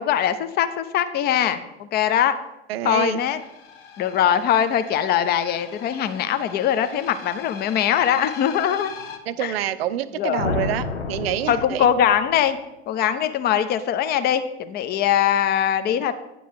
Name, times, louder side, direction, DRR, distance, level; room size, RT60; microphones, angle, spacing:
voice 1, 0.0-2.3 2.8-3.4 4.0-8.9 9.4-9.6 10.2-10.6 11.5-12.6 12.9-16.1, left 9 dB, 30° left, 11 dB, 0.6 m, -22 dB
voice 2, 2.7-3.2 9.3-11.9, right 12 dB, 65° right, 15 dB, 0.6 m, -27 dB
sound 1, 3.1-9.2, left 6 dB, 60° left, 1.2 m, -41 dB
sound 2, 10.4-12.3, left 4 dB, 80° left, 0.8 m, -29 dB
9.2 x 3.9 x 6.3 m, 0.92 s
figure-of-eight pair, 80°, 33 cm